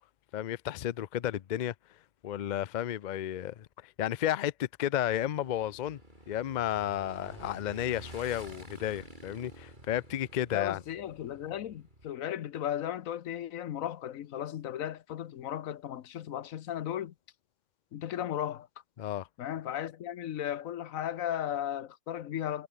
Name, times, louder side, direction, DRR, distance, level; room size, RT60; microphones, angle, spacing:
voice 1, 0.3-1.7 2.2-6.0 6.3-10.8 19.0-19.3, left 11 dB, 60° left, 0.5 m, -32 dB
Motorcycle / Engine, 5.1-12.1, right 1 dB, 35° right, 6.2 m, -50 dB
voice 2, 10.5-17.1 17.9-18.7 19.4-22.7, left 11 dB, 85° left, 1.2 m, -35 dB
omnidirectional pair, 1.4 m